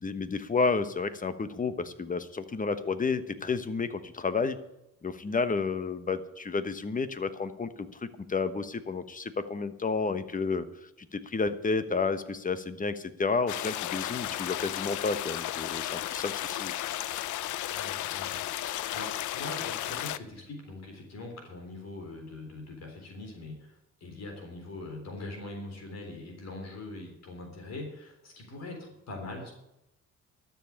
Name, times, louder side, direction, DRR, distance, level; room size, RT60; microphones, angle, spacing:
voice 1, 0.0-4.6 5.0-10.6 11.1-16.7, left 4 dB, 25° left, 12 dB, 1.2 m, -31 dB
sound 1, 13.5-20.2, left 13 dB, 75° left, 0.6 m, -34 dB
voice 2, 14.2-14.6 17.7-29.5, left 2 dB, 60° left, 2 dB, 3.8 m, -42 dB
12.5 x 7.4 x 8.7 m, 0.87 s
cardioid pair, 90°, 30 cm